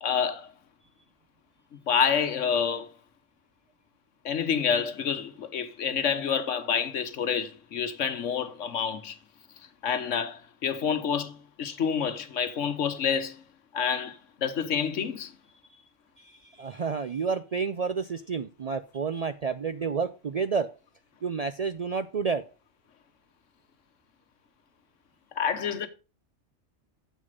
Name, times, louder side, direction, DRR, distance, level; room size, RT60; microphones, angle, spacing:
voice 1, 0.0-0.5 1.9-2.9 4.2-9.2 9.8-13.4 13.7-15.3 25.4-25.9, left 7 dB, 85° left, 1.3 m, -28 dB
voice 2, 16.2-20.7 21.2-22.4, right 5 dB, 55° right, 0.4 m, -30 dB
7.7 x 6.5 x 5.2 m
omnidirectional pair, 1.2 m